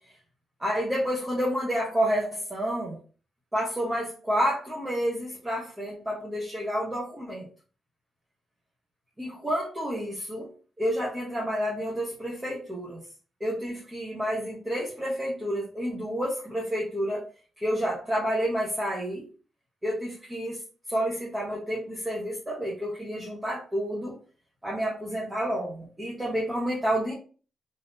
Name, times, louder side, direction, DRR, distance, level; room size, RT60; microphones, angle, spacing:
voice 1, 0.6-3.0 3.5-7.5 9.2-10.5 10.8-13.0 13.4-17.3 17.6-19.3 19.8-20.6 20.9-24.2 24.6-27.1, equal, 10° right, -4 dB, 0.9 m, -29 dB
3.5 x 2.7 x 2.6 m, 0.38 s
cardioid pair, 115°, 0 cm